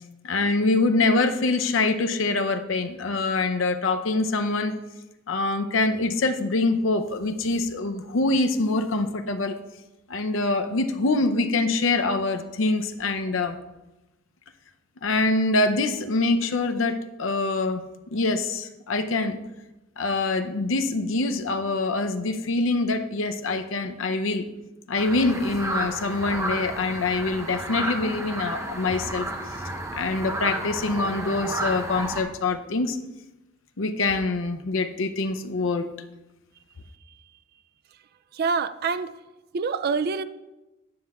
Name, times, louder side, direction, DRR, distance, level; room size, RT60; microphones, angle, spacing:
voice 1, 0.2-4.7 5.3-9.6 10.1-13.6 15.0-17.8 18.1-19.4 20.0-24.4 24.9-29.3 29.9-33.0 33.8-35.9, left 3 dB, 70° left, 0.6 m, -24 dB
sound 1, 24.9-32.2, right 1 dB, 15° right, 0.8 m, -32 dB
voice 2, 38.3-39.1 39.5-40.2, right 5 dB, 50° right, 0.4 m, -26 dB
9.5 x 3.5 x 6.5 m
head